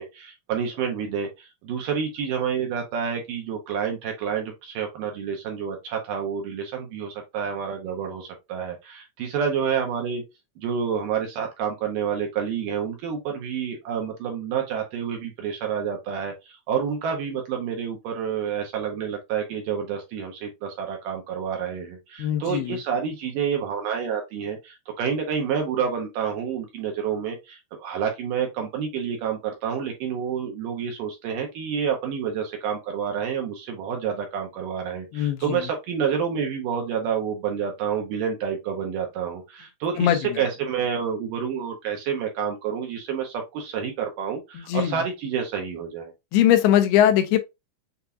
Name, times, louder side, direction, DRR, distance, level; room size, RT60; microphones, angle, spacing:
voice 1, 0.0-10.2 10.6-46.1, right 7 dB, 70° right, 2.2 m, -29 dB
voice 2, 22.2-22.8 35.1-35.6 40.0-40.4 44.6-44.9 46.3-47.4, left 11 dB, 85° left, 2.6 m, -21 dB
6.8 x 2.6 x 2.3 m
omnidirectional pair, 4.5 m